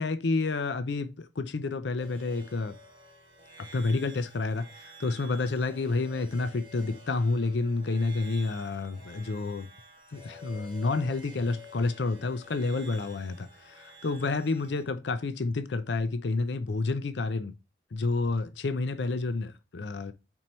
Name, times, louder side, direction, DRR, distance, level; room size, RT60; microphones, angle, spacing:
voice 1, 0.0-2.8 3.6-9.7 10.1-17.5 17.9-20.1, left 3 dB, 75° left, 0.5 m, -29 dB
sound 1, 2.0-14.8, equal, 25° right, 1.6 m, -51 dB
4.5 x 4.4 x 5.3 m
head